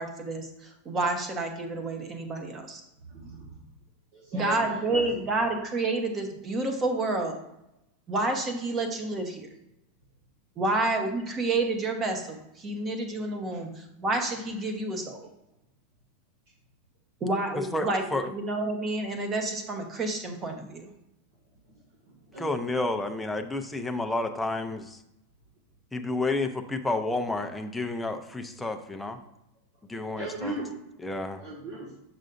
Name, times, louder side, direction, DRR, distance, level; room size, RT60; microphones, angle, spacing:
voice 1, 0.0-2.8 4.3-7.4 8.1-9.5 10.6-15.3 17.2-20.8, right 2 dB, 25° right, 4 dB, 1.0 m, -29 dB
voice 2, 3.0-3.6 4.1-5.1 13.5-13.6 22.1-22.5 29.9-30.8 31.4-31.9, right 1 dB, 65° right, -5 dB, 1.6 m, -38 dB
voice 3, 17.7-18.3 22.4-25.0 25.9-29.2 29.9-30.5 31.0-31.4, left 2 dB, 5° left, 4 dB, 0.5 m, -30 dB
6.6 x 6.1 x 2.6 m, 0.85 s
supercardioid pair, 145°, 0 cm